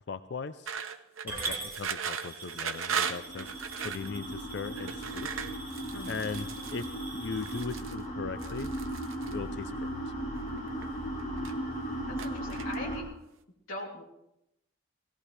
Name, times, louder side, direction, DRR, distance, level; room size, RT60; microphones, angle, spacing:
voice 1, 0.1-0.7 1.2-3.5 3.8-5.3 6.1-6.9 7.2-8.7 9.3-10.1, left 4 dB, 55° left, 11 dB, 0.4 m, -38 dB
sound 1, 0.7-4.1 4.8-6.9 7.4-8.0 8.4-9.3 10.2-10.9 11.2-11.8 12.2-13.0, right 7 dB, 80° right, 0.9 m, -37 dB
voice 2, 1.3-1.6 5.9-6.2 12.1-13.1 13.7-14.0, left 1 dB, 80° left, -4 dB, 2.9 m, -41 dB
Coin (dropping) / Glass, 1.3-7.6, right 3 dB, 10° right, 2.3 m, -43 dB
sound 2, 2.7-13.0, right 1 dB, 35° left, 3.2 m, -37 dB
18.0 x 17.0 x 3.3 m, 0.84 s
head